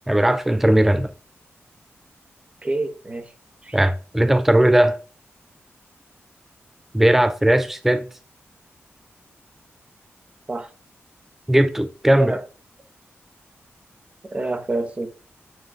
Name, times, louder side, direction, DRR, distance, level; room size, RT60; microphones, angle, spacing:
voice 1, 0.1-1.1 3.7-5.0 6.9-8.1 11.5-12.4, right 1 dB, 5° right, 0.5 m, -18 dB
voice 2, 2.6-3.2 3.6-3.8 10.5-10.7 12.1-12.4 14.3-15.1, right 2 dB, 25° right, 1.1 m, -26 dB
8.7 x 3.2 x 3.6 m
wide cardioid pair, 105°, 5 cm